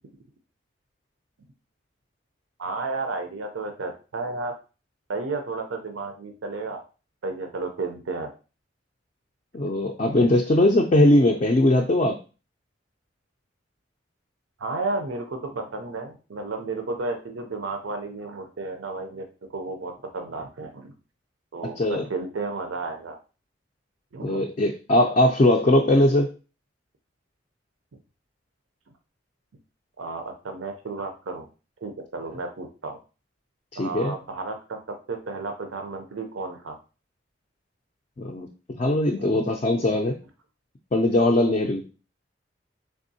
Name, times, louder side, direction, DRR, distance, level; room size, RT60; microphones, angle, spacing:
voice 1, 2.6-4.5 5.1-6.8 7.2-8.3 14.6-20.9 21.5-23.2 24.1-24.4 30.0-31.5 31.8-33.0 33.8-34.8 35.1-36.8 39.2-40.0, right 3 dB, 90° right, 5 dB, 0.5 m, -33 dB
voice 2, 9.5-12.2 21.8-22.1 24.2-26.3 33.8-34.1 38.2-38.5 38.8-40.2 40.9-41.8, left 1 dB, 35° left, 1 dB, 0.3 m, -20 dB
3.5 x 3.5 x 2.6 m, 0.33 s
head